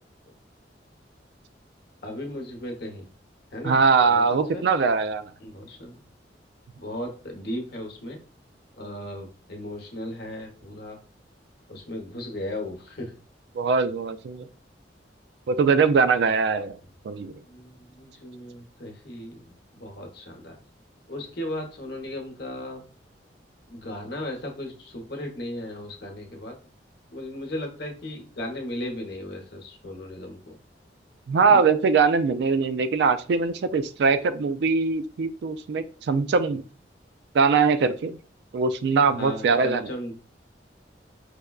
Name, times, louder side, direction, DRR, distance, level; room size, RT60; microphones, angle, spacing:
voice 1, 2.0-3.1 3.5-3.8 4.1-4.2 4.5-4.7 5.4-6.0 6.8-8.2 8.8-11.0 11.7-13.1 17.4-20.6 21.1-22.8 23.7-26.5 27.1-30.6 31.5-31.6 39.1-40.2, left 1 dB, 60° left, 2 dB, 0.9 m, -36 dB
voice 2, 3.6-5.3 13.6-14.5 15.5-16.8 17.0-17.3 31.3-36.6 37.3-38.2 38.5-39.9, right 5 dB, 65° right, 11 dB, 0.3 m, -22 dB
4.9 x 2.2 x 2.3 m, 0.38 s
head